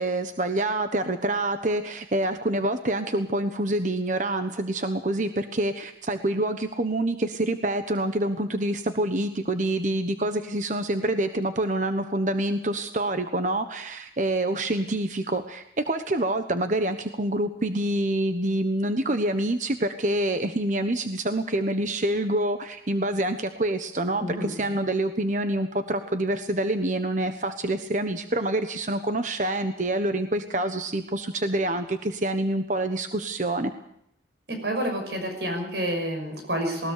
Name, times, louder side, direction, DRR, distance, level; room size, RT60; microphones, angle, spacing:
voice 1, 0.0-33.7, right 1 dB, 45° right, 8 dB, 1.2 m, -26 dB
voice 2, 24.2-24.5 34.5-36.9, equal, 70° right, 4 dB, 5.9 m, -29 dB
20.0 x 20.0 x 6.7 m, 0.73 s
head